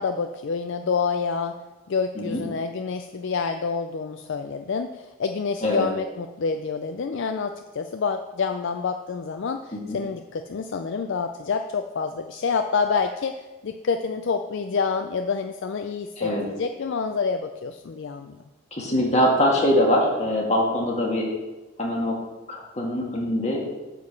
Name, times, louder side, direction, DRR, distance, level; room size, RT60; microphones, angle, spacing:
voice 1, 0.0-1.6 1.9-18.4, left 5 dB, 55° left, 7 dB, 0.4 m, -28 dB
voice 2, 18.7-21.3 21.8-22.2 22.5-23.6, equal, 30° left, -2 dB, 2.0 m, -23 dB
8.9 x 4.9 x 7.0 m, 1.1 s
head